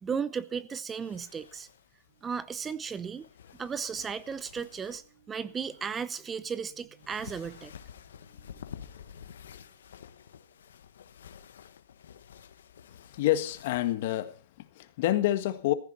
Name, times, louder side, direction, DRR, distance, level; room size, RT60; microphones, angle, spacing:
voice 1, 0.0-1.7 2.2-3.3 3.6-7.7, right 6 dB, 15° right, 0.7 m, -35 dB
sound 1, 1.0-13.9, left 8 dB, 80° left, 1.3 m, -50 dB
sound 2, 2.1-11.2, right 8 dB, 85° right, 7.4 m, -66 dB
voice 2, 13.0-15.7, left 14 dB, 55° left, 1.5 m, -28 dB
15.0 x 14.5 x 4.2 m
hypercardioid pair, 130°, 0 cm